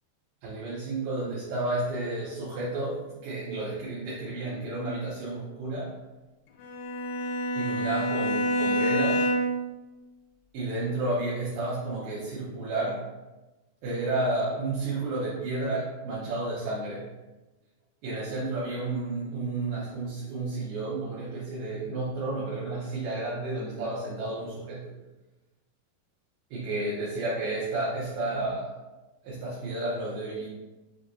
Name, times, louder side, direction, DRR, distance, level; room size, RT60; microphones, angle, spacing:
voice 1, 0.4-5.9 7.5-9.3 10.5-13.0 13.8-17.1 18.0-25.0 26.5-28.7 29.2-30.5, right 2 dB, 75° right, -7 dB, 2.5 m, -31 dB
Bowed string instrument, 6.6-9.7, equal, 80° left, 2.1 m, -27 dB
6.3 x 3.2 x 2.6 m, 1.1 s
omnidirectional pair, 4.9 m